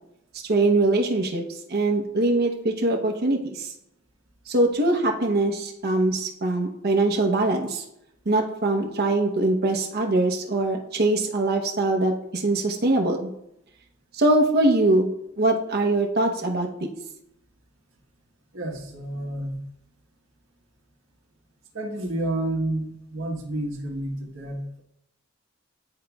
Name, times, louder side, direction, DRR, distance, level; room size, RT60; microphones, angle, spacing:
voice 1, 0.5-1.4 1.7-3.7 4.5-7.8 8.3-13.3 14.1-15.1 15.4-16.7, right 2 dB, 50° right, 1 dB, 0.9 m, -22 dB
voice 2, 18.5-19.6 21.7-24.8, right 1 dB, 70° right, -1 dB, 1.2 m, -30 dB
10.5 x 3.9 x 2.3 m, 0.80 s
head